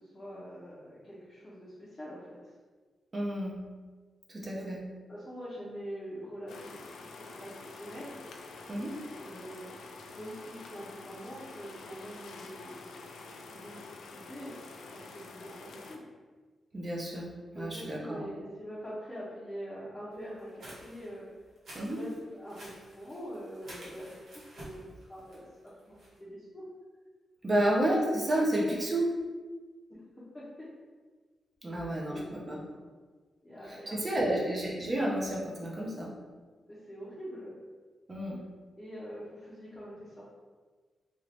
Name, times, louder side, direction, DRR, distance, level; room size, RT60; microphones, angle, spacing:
voice 1, 0.0-2.5 4.6-4.7 5.1-8.2 9.2-9.7 10.1-12.9 13.1-13.2 13.5-16.0 17.5-21.3 21.8-24.2 24.5-24.8 25.1-26.6 29.9-30.0 30.3-30.5 31.6-32.8 33.4-34.5 36.7-37.6 38.7-40.3, equal, 15° left, -9 dB, 0.7 m, -44 dB
voice 2, 3.1-3.6 4.3-4.8 8.7-8.9 16.7-17.3 17.5-18.2 21.7-22.0 27.4-29.1 31.6-32.6 33.7-36.1 38.1-38.4, right 1 dB, 25° right, -3 dB, 0.6 m, -30 dB
sound 1, 6.5-16.0, left 3 dB, 90° left, 0.3 m, -47 dB
sound 2, 20.3-26.2, right 1 dB, 60° right, 1.1 m, -51 dB
2.9 x 2.6 x 3.4 m, 1.4 s
wide cardioid pair, 170°, 0 cm